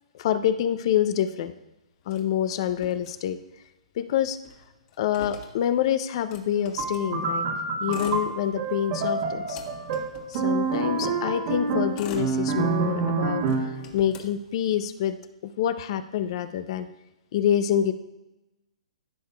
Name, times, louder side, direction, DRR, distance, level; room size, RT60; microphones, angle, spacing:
voice 1, 0.1-1.5 2.1-3.4 4.0-4.4 5.0-7.4 7.8-9.6 10.3-13.5 13.9-16.9 17.3-17.9, left 10 dB, 50° left, 11 dB, 0.5 m, -26 dB
Motor vehicle (road), 2.1-3.7 4.0-4.1 4.3-7.1 7.7-8.8 9.2-11.0 11.6-13.0 13.4-15.0, left 6 dB, 30° left, 1.3 m, -44 dB
sound 1, 6.8-13.8, right 4 dB, 45° right, 1.5 m, -27 dB
15.0 x 6.5 x 2.2 m, 1.0 s
hypercardioid pair, 140°, 4 cm